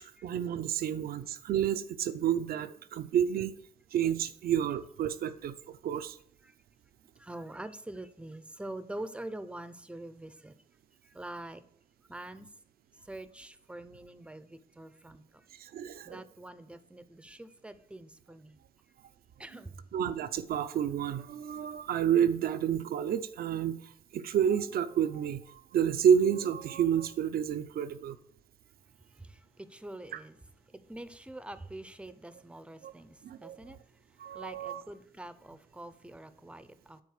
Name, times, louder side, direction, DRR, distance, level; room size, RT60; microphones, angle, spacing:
voice 1, 0.0-3.5 3.9-6.2 15.6-16.2 19.5-19.6 19.9-23.8 24.1-28.2 30.1-30.2 32.8-32.9 33.2-33.8 34.2-34.8, right 9 dB, 80° right, 12 dB, 0.6 m, -30 dB
voice 2, 7.2-10.5 11.1-11.6 12.1-12.5 13.1-15.2 16.0-18.6 19.4-19.7 29.2-30.4 30.7-33.8 34.3-37.0, right 1 dB, 5° right, 12 dB, 0.6 m, -45 dB
9.6 x 4.2 x 6.6 m, 0.66 s
cardioid pair, 105°, 15 cm